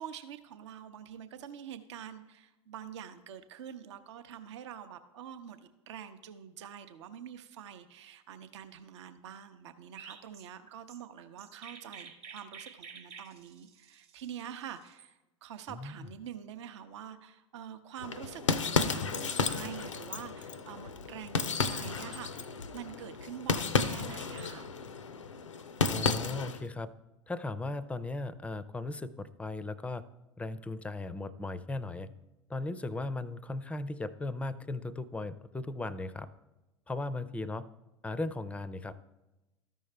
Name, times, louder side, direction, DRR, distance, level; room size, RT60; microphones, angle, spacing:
voice 1, 0.0-18.4 18.8-24.7, right 9 dB, 70° right, 9 dB, 0.6 m, -46 dB
Chirp tweet, 9.9-15.1, right 6 dB, 40° right, 1.0 m, -50 dB
voice 2, 15.7-16.1 25.9-26.9 27.3-30.0 30.4-32.1 32.5-36.3 36.9-37.7 38.0-39.0, left 2 dB, 10° left, 16 dB, 0.4 m, -37 dB
sound 1, 18.0-26.7, left 5 dB, 90° left, 0.5 m, -33 dB
13.0 x 5.4 x 3.3 m, 1.0 s
hypercardioid pair, 85°, 16 cm